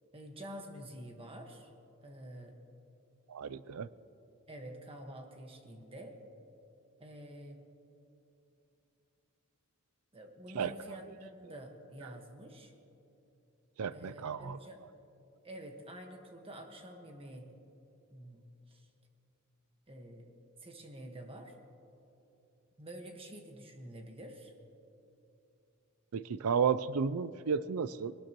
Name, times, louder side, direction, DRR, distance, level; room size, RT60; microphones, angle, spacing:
voice 1, 0.1-1.7 2.0-2.6 4.5-6.2 7.0-7.6 10.1-12.7 13.9-14.8 15.4-17.5 18.1-18.9 19.9-20.3 20.6-21.5 22.8-24.5, right 1 dB, 25° right, 3 dB, 1.4 m, -48 dB
voice 2, 3.3-3.9 10.5-10.7 13.8-14.6 26.1-28.1, right 6 dB, 80° right, 17 dB, 0.5 m, -32 dB
20.5 x 19.0 x 3.0 m, 2.9 s
head